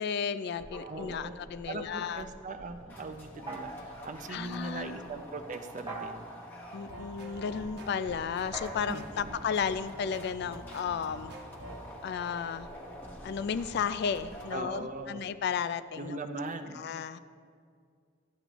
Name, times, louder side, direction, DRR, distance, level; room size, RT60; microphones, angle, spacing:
voice 1, 0.0-2.2 4.3-5.0 6.7-11.3 12.0-12.7 13.2-16.2 16.7-17.2, left 7 dB, 60° left, 14 dB, 0.3 m, -33 dB
sound 1, 0.6-14.5, equal, 10° left, 1.1 m, -48 dB
sound 2, 0.7-1.8 3.5-4.1 5.9-6.5 8.5-10.3, right 2 dB, 25° right, 1.1 m, -44 dB
voice 2, 0.9-1.3 1.7-6.3 8.9-9.4 14.5-15.3 16.0-16.8, right 3 dB, 40° right, 8 dB, 0.5 m, -40 dB
sound 3, 6.7-11.9, equal, 60° right, 1.0 m, -47 dB
12.0 x 8.4 x 3.0 m, 2.2 s
head